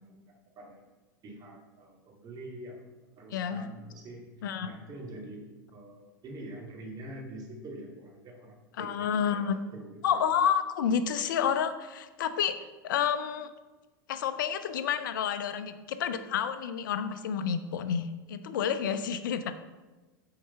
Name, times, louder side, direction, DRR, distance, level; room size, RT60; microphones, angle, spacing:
voice 1, 1.2-2.8 3.2-4.2 4.6-9.4 9.7-10.2, right 1 dB, 35° right, -1 dB, 2.5 m, -45 dB
voice 2, 3.3-3.6 4.4-4.7 8.8-9.6 10.0-13.5 14.1-19.6, left 8 dB, 70° left, 11 dB, 0.6 m, -30 dB
9.1 x 4.8 x 5.6 m, 1.2 s
hypercardioid pair, 90°, 11 cm